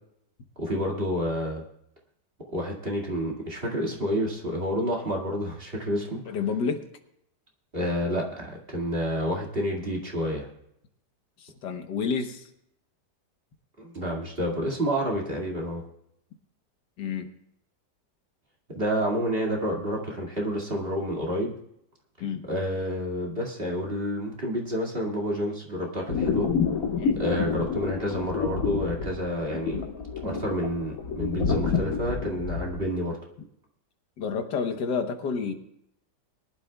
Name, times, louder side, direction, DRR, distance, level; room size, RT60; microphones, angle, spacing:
voice 1, 0.6-1.6 2.5-6.4 7.7-10.5 13.8-15.8 18.7-21.5 22.5-26.5 27.2-29.8 30.2-33.1, equal, 35° right, 0 dB, 2.3 m, -29 dB
voice 2, 6.3-6.8 11.4-12.5 17.0-17.3 22.2-22.4 27.0-27.2 34.2-35.5, left 5 dB, 80° left, 6 dB, 1.7 m, -29 dB
sound 1, 26.1-32.8, left 5 dB, 55° left, 1.8 m, -28 dB
22.0 x 11.5 x 2.3 m, 0.77 s
omnidirectional pair, 1.8 m